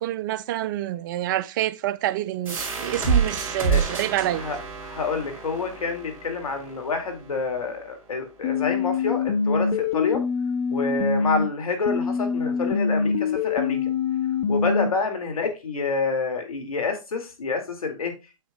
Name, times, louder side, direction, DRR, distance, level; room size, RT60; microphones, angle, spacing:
voice 1, 0.0-4.5, right 13 dB, 35° right, 0.4 m, -27 dB
sound 1, 2.5-7.9, right 5 dB, 10° right, 2.7 m, -28 dB
voice 2, 4.3-10.2 10.7-13.9 14.5-18.1, left 4 dB, 85° left, 2.3 m, -28 dB
sound 2, 8.4-11.4 11.9-14.9, left 5 dB, 50° left, 0.9 m, -24 dB
9.2 x 7.1 x 2.3 m
hypercardioid pair, 145°, 18 cm